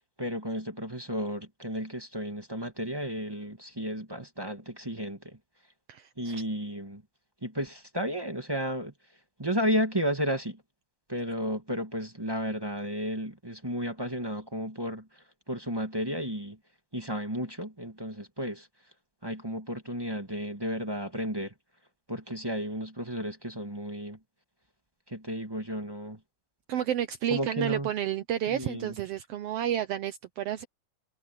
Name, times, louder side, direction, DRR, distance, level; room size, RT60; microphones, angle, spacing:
voice 1, 0.2-5.4 6.2-7.0 7.4-8.9 9.4-10.6 11.1-16.6 16.9-18.7 19.2-21.5 22.1-24.2 25.1-26.2 27.3-27.9 28.5-28.9, equal, 10° right, 1.2 m, -33 dB
voice 2, 5.9-6.4 26.7-30.6, right 11 dB, 75° right, 1.5 m, -31 dB
omnidirectional pair, 3.4 m